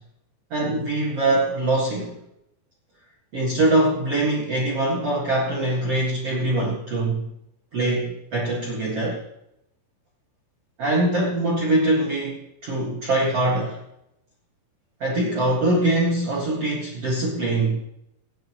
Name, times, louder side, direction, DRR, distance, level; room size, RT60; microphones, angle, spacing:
voice 1, 0.5-2.1 3.3-7.3 7.7-9.2 10.8-13.8 15.0-17.8, right 2 dB, 60° right, -4 dB, 1.5 m, -23 dB
25.5 x 9.1 x 3.1 m, 0.81 s
omnidirectional pair, 6.0 m